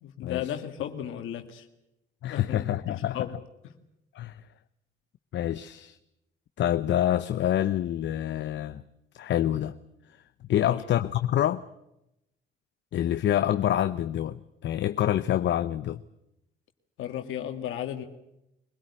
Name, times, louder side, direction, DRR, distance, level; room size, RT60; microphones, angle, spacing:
voice 1, 0.0-1.7 2.2-3.3 3.6-3.7 10.5-10.8 17.0-18.0, left 10 dB, 85° left, 5 dB, 2.0 m, -35 dB
voice 2, 2.2-3.3 4.1-4.4 5.3-6.0 6.6-8.8 9.1-9.8 10.5-11.6 12.9-16.0, left 11 dB, 65° left, 11 dB, 0.8 m, -27 dB
23.0 x 17.0 x 9.8 m, 0.85 s
cardioid pair, 90°, 20 cm